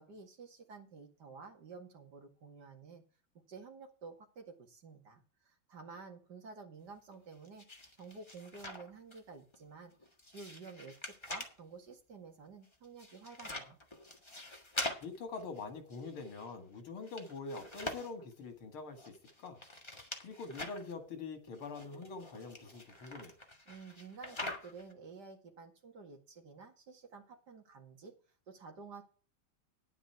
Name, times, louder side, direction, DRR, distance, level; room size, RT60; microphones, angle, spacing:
voice 1, 0.0-3.0 3.5-7.7 8.0-9.9 10.3-13.8 23.7-28.1 28.5-29.0, right 4 dB, 55° right, 3 dB, 2.5 m, -51 dB
sound 1, 7.1-9.2 9.5-11.6 12.6-16.6 16.9-18.3 19.0-20.9 21.5-24.9, left 1 dB, 15° left, 1.4 m, -45 dB
voice 2, 15.0-19.6 20.2-23.3, left 4 dB, 90° left, 7 dB, 2.8 m, -44 dB
10.0 x 9.5 x 4.6 m, 0.37 s
omnidirectional pair, 2.3 m